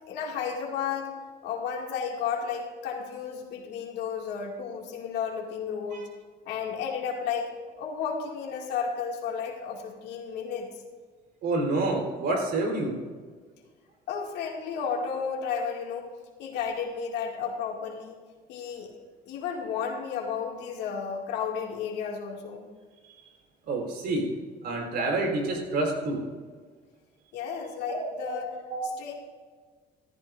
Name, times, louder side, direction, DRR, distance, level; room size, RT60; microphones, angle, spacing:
voice 1, 0.1-1.1 1.4-6.0 6.5-7.5 7.8-10.7 14.1-16.1 16.4-18.2 18.5-18.9 19.3-22.7 27.3-28.5 28.8-29.1, left 6 dB, 90° left, 0 dB, 2.3 m, -33 dB
voice 2, 11.4-12.9 23.6-24.3 24.6-26.2 27.9-28.4 28.7-28.9, right 2 dB, 70° right, 1 dB, 4.1 m, -28 dB
15.0 x 13.5 x 2.6 m, 1.5 s
cardioid pair, 110°, 17 cm